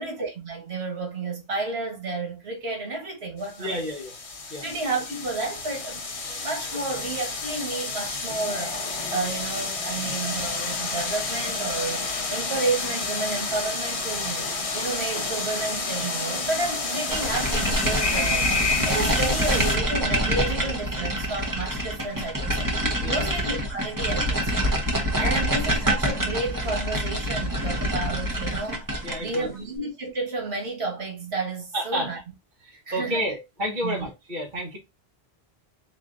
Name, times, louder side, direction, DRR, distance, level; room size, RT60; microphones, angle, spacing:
voice 1, 0.0-3.8 4.6-6.0 6.4-12.0 12.3-14.5 14.7-18.5 18.8-22.7 23.0-24.6 25.2-28.8 29.2-32.2 32.7-33.2 33.8-34.1, right 3 dB, 85° right, 1.6 m, -31 dB
sound 1, 3.4-19.8, left 3 dB, 35° left, 0.8 m, -30 dB
voice 2, 3.6-4.1 4.5-4.6 23.0-23.3 25.2-25.3 29.0-29.5 31.7-32.1 32.6-34.8, equal, 50° right, 1.5 m, -30 dB
sound 2, 17.1-29.5, equal, 20° right, 0.9 m, -26 dB
4.3 x 2.7 x 3.7 m
omnidirectional pair, 1.0 m